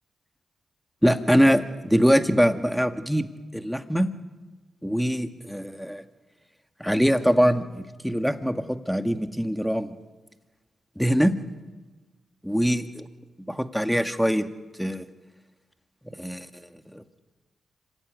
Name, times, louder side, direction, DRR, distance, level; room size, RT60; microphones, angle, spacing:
voice 1, 1.0-4.1 4.8-6.0 6.8-9.9 11.0-11.4 12.4-13.1 13.5-14.5 14.8-15.1 16.2-17.0, equal, ahead, 7 dB, 1.9 m, -23 dB
26.0 x 15.5 x 9.6 m, 1.2 s
supercardioid pair, 55°, 0 cm